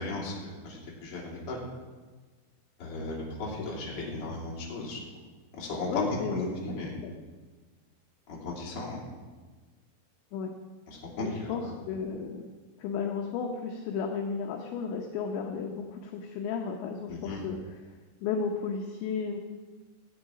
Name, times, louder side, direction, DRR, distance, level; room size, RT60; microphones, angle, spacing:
voice 1, 0.0-1.6 2.8-5.0 5.6-6.9 8.3-9.0 10.9-11.7 17.1-17.4, left 2 dB, 35° left, -4 dB, 3.2 m, -35 dB
voice 2, 5.9-6.4 7.0-7.1 10.3-10.5 11.2-12.5 12.8-17.9 18.2-19.4, left 5 dB, 75° left, 2 dB, 2.9 m, -34 dB
17.5 x 8.5 x 4.9 m, 1.3 s
omnidirectional pair, 5.8 m